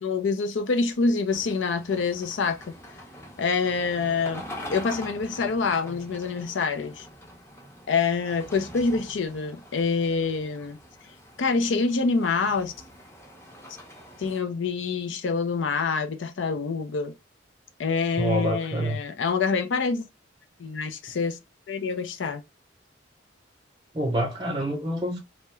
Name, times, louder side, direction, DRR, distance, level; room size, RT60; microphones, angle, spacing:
voice 1, 0.0-2.8 3.4-7.1 7.9-10.8 11.4-12.7 14.2-17.1 17.8-20.0 20.6-21.4 21.7-22.4, left 4 dB, 70° left, 0.4 m, -26 dB
sound 1, 1.3-14.4, equal, 15° left, 0.7 m, -44 dB
voice 2, 18.2-19.0 23.9-25.2, right 1 dB, 20° right, 0.5 m, -27 dB
2.3 x 2.1 x 2.9 m
head